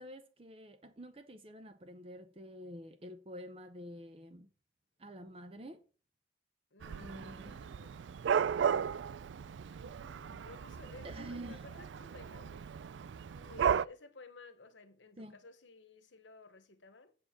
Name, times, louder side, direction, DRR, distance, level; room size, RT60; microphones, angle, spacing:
voice 1, 0.0-4.5 5.0-5.8 7.0-7.7 11.0-11.7 15.2-15.4, equal, 30° right, 0.7 m, -48 dB
voice 2, 6.7-8.0 9.7-12.7 13.3-17.2, left 3 dB, 85° left, 1.3 m, -55 dB
Dog / Cat, 6.8-13.8, right 7 dB, 85° right, 0.4 m, -35 dB
8.0 x 4.7 x 7.3 m
head